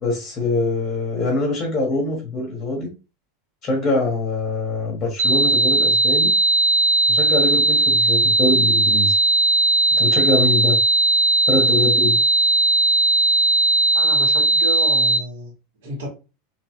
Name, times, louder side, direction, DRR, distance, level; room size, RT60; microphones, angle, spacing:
voice 1, 0.0-2.9 3.6-6.3 7.1-9.2 10.0-10.8 11.5-12.2, left 2 dB, 20° left, -1 dB, 0.9 m, -23 dB
sound 1, 5.2-15.2, right 2 dB, 55° right, 0.5 m, -17 dB
voice 2, 13.9-15.5 15.8-16.1, right 1 dB, 75° right, 0 dB, 1.5 m, -31 dB
2.6 x 2.3 x 2.8 m, 0.30 s
supercardioid pair, 160°, 0 cm